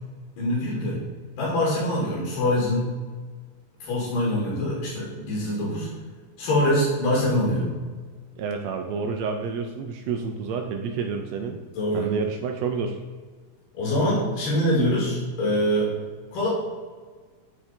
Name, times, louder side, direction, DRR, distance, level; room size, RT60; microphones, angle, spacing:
voice 1, 0.4-1.0 1.4-2.8 3.8-5.9 6.4-7.8 11.7-12.1 13.7-16.0 16.3-16.5, left 1 dB, 80° left, -5 dB, 4.1 m, -24 dB
voice 2, 8.4-11.6 11.9-13.0, right 5 dB, 85° right, 4 dB, 1.5 m, -29 dB
11.5 x 4.6 x 4.4 m, 1.5 s
omnidirectional pair, 3.8 m